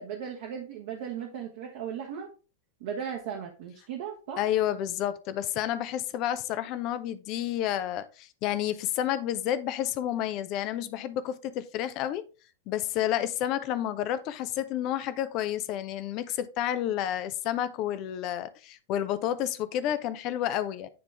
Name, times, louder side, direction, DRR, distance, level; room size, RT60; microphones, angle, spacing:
voice 1, 0.0-2.3 2.8-4.4, right 8 dB, 55° right, 1.2 m, -37 dB
voice 2, 4.4-12.2 12.7-20.9, left 11 dB, 40° left, 0.6 m, -30 dB
9.4 x 3.7 x 3.4 m
figure-of-eight pair, 90°, 0 cm